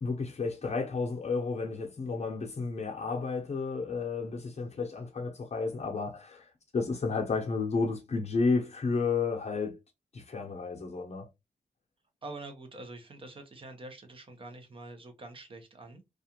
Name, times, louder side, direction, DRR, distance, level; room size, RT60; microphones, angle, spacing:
voice 1, 0.0-9.8 10.1-11.3, left 4 dB, 45° left, 0.7 m, -32 dB
voice 2, 12.2-16.0, right 2 dB, 35° right, 0.7 m, -45 dB
2.4 x 2.4 x 2.8 m
wide cardioid pair, 115°, 15 cm